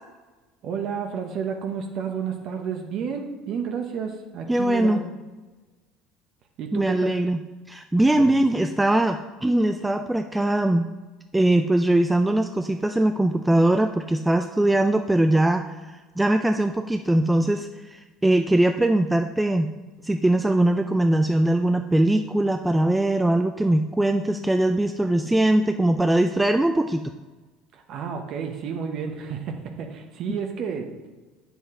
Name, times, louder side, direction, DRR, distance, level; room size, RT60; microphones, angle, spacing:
voice 1, 0.6-5.0 6.6-7.2 8.2-8.3 27.7-31.1, right 6 dB, 50° right, 4 dB, 0.9 m, -31 dB
voice 2, 4.5-5.0 6.7-7.4 7.7-10.9 11.3-19.7 20.0-27.1, right 1 dB, 5° right, 6 dB, 0.3 m, -21 dB
7.9 x 7.0 x 3.7 m, 1.3 s
cardioid pair, 130°, 0 cm